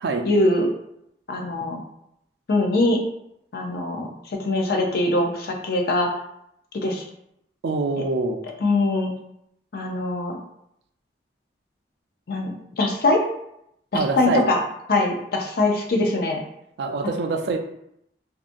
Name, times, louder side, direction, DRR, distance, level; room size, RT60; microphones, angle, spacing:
voice 1, 0.2-0.7 1.3-1.8 2.5-3.0 3.5-4.1 4.4-6.1 6.8-7.0 8.6-9.1 9.7-10.3 12.3-13.2 13.9-14.6 14.9-16.4, left 2 dB, 55° left, 2 dB, 0.4 m, -22 dB
voice 2, 7.6-8.4 13.9-14.4 16.8-17.6, right 3 dB, 65° right, 5 dB, 0.3 m, -24 dB
2.7 x 2.3 x 2.5 m, 0.77 s
head